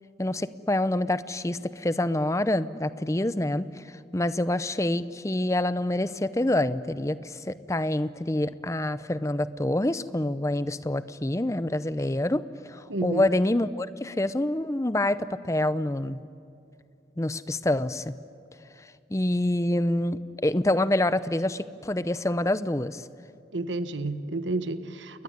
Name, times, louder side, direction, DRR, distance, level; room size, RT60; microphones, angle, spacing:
voice 1, 0.2-16.2 17.2-18.1 19.1-23.0, left 1 dB, 15° left, 15 dB, 0.6 m, -27 dB
voice 2, 12.9-13.3 23.5-25.2, right 2 dB, 90° right, 11 dB, 1.2 m, -30 dB
29.0 x 21.0 x 9.5 m, 2.5 s
head